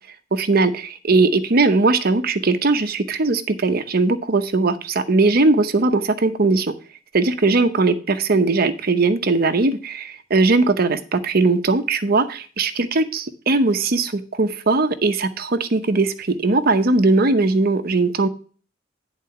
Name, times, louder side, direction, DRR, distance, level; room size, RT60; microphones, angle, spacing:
voice 1, 0.3-6.7 7.1-18.3, right 3 dB, 50° right, 9 dB, 0.8 m, -19 dB
10.5 x 4.1 x 5.7 m, 0.39 s
head